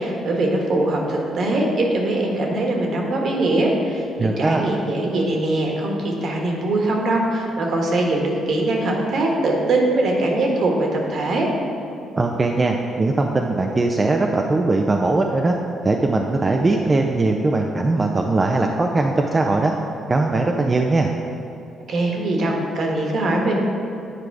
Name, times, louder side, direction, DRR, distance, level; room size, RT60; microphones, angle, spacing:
voice 1, 0.0-11.5 21.9-23.6, right 2 dB, 60° right, 0 dB, 1.4 m, -22 dB
voice 2, 4.2-4.6 12.2-15.5 15.8-19.7 20.1-21.1, right 2 dB, 25° right, 2 dB, 0.5 m, -20 dB
9.0 x 4.8 x 4.8 m, 2.6 s
cardioid pair, 90°, 0 cm